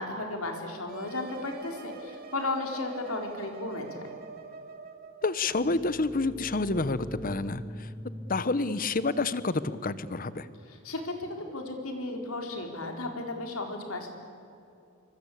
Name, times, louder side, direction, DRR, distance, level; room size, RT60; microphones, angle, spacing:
voice 1, 0.0-4.2 10.7-14.1, left 2 dB, 80° left, 3 dB, 4.3 m, -34 dB
sound 1, 0.9-5.3, right 4 dB, 45° right, 2.5 m, -45 dB
voice 2, 5.2-7.9 8.3-10.5, left 3 dB, 40° left, 15 dB, 1.0 m, -29 dB
sound 2, 5.4-11.0, left 1 dB, 5° left, 0.8 m, -44 dB
26.5 x 24.0 x 8.6 m, 2.6 s
head